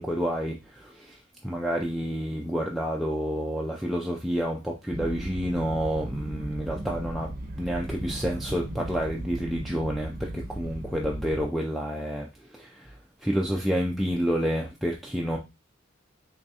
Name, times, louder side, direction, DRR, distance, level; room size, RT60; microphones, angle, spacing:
voice 1, 0.0-7.3 7.6-15.4, equal, ahead, 0.3 m, -29 dB
sound 1, 4.9-11.4, right 1 dB, 50° right, 0.6 m, -37 dB
3.5 x 3.1 x 2.7 m
head